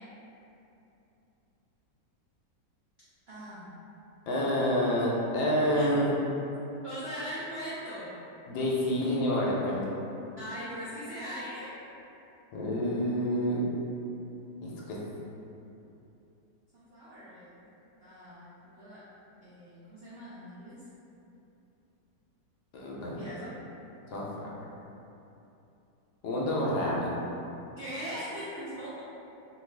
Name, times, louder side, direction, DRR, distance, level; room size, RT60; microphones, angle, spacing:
voice 1, 3.3-3.7 5.7-5.8 6.8-8.1 10.4-11.8 16.7-17.6 18.0-19.0 19.4-20.8 23.2-23.6 27.8-29.0, equal, 85° right, -11 dB, 0.5 m, -40 dB
voice 2, 4.3-6.1 8.5-9.9 12.5-13.6 14.6-15.0 22.7-23.2 24.1-24.5 26.2-27.1, equal, 75° left, -4 dB, 1.1 m, -28 dB
2.9 x 2.3 x 3.2 m, 2.9 s
omnidirectional pair, 1.9 m